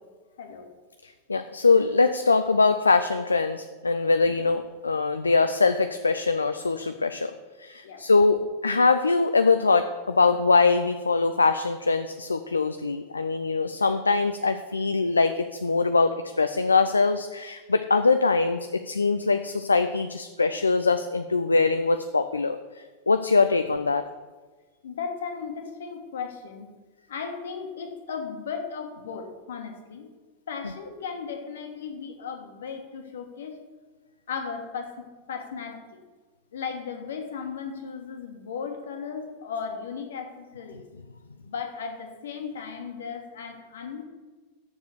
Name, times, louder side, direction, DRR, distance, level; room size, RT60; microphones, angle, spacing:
voice 1, 0.4-0.7 7.8-8.0 24.8-26.7 27.1-30.1 30.5-33.6 34.3-36.0 36.5-40.8 41.4-44.1, left 6 dB, 65° left, 4 dB, 1.5 m, -36 dB
voice 2, 1.0-7.3 7.6-24.1, left 4 dB, 80° left, 9 dB, 0.4 m, -23 dB
7.0 x 6.6 x 7.8 m, 1.3 s
figure-of-eight pair, 90°, 0 cm